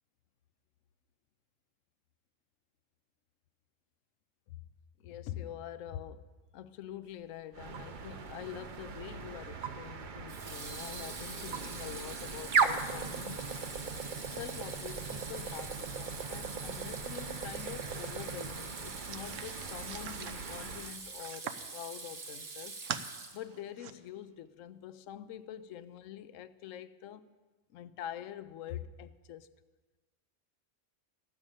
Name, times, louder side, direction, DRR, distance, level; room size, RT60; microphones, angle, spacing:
voice 1, 5.0-6.3 6.5-13.5 13.9-22.8 23.3-27.3 27.7-29.5, left 11 dB, 80° left, 0.9 m, -45 dB
sound 1, 7.5-21.0, right 5 dB, 50° right, 0.7 m, -38 dB
Water tap faucet / Sink (filling or washing), 8.6-9.0 10.3-23.7, right 4 dB, 65° right, 1.5 m, -45 dB
sound 2, 19.1-21.7 22.2-23.1 23.5-23.9, right 9 dB, 80° right, 1.0 m, -43 dB
14.5 x 6.3 x 8.9 m
omnidirectional pair, 1.3 m